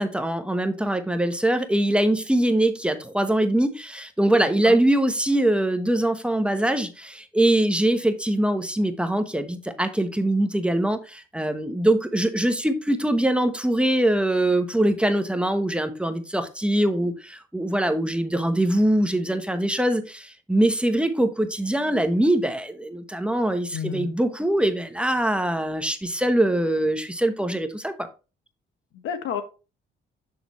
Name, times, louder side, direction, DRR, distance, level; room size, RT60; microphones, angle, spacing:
voice 1, 0.0-28.1, right 1 dB, 5° right, 1.0 m, -23 dB
voice 2, 23.7-24.1 28.9-29.4, left 8 dB, 85° left, 1.3 m, -30 dB
6.7 x 6.5 x 3.1 m
cardioid pair, 90°, 20 cm